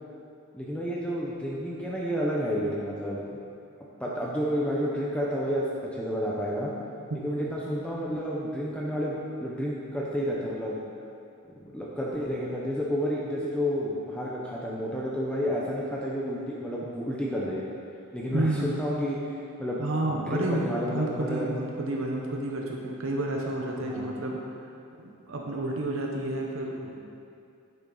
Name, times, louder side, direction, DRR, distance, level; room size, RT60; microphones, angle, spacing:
voice 1, 0.5-3.4 4.0-5.6 5.9-6.7 7.1-10.8 11.5-17.6 18.1-19.2 19.6-21.5 23.8-24.1, equal, 5° left, -5 dB, 0.7 m, -30 dB
voice 2, 7.1-7.5 18.3-18.7 19.8-24.4 25.0-27.0, right 2 dB, 60° right, -1 dB, 0.9 m, -30 dB
9.8 x 7.1 x 3.9 m, 2.5 s
head